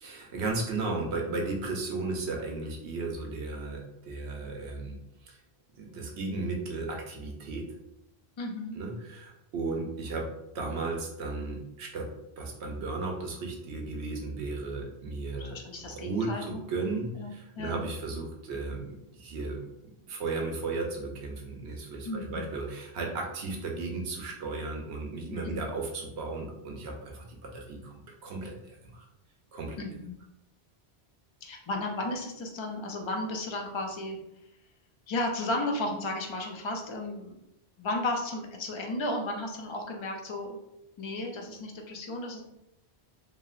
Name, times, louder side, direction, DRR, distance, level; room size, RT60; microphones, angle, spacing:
voice 1, 0.0-5.0 5.2-5.4 5.7-7.7 8.8-10.3 10.5-12.1 12.4-15.6 15.8-19.7 20.1-29.1 29.5-29.8, right 3 dB, 85° right, 1 dB, 0.9 m, -35 dB
voice 2, 8.4-8.8 15.4-16.6 17.2-17.3 17.6-17.9 22.1-22.5 25.3-25.6 29.8-30.2 31.4-34.2 35.1-37.4 37.8-40.6 41.0-42.4, left 2 dB, 50° left, 2 dB, 0.3 m, -34 dB
2.8 x 2.7 x 2.4 m, 0.84 s
omnidirectional pair, 1.1 m